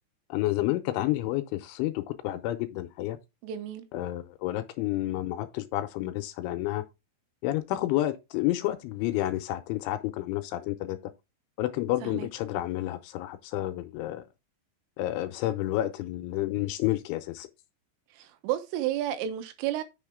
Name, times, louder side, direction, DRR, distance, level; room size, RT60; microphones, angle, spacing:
voice 1, 0.3-3.2 3.9-6.8 7.4-11.0 11.6-14.2 15.0-17.5, left 15 dB, 80° left, 2.9 m, -30 dB
voice 2, 3.4-3.9 12.0-12.3 18.2-19.8, right 12 dB, 85° right, 3.7 m, -31 dB
7.7 x 6.4 x 3.6 m
omnidirectional pair, 5.8 m